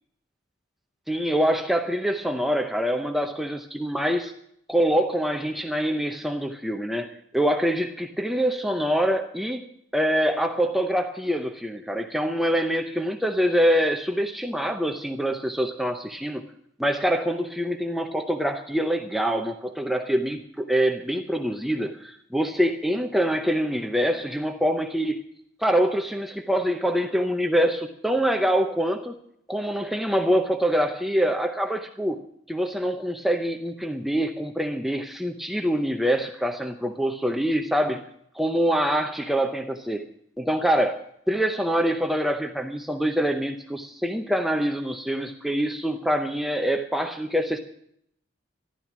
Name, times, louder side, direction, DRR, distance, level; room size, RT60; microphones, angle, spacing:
voice 1, 1.1-4.3 4.7-9.6 9.9-16.4 16.8-25.2 25.6-29.1 29.5-32.2 32.5-38.0 38.3-40.0 40.4-47.6, equal, ahead, 4 dB, 0.6 m, -25 dB
14.0 x 12.0 x 6.0 m, 0.71 s
head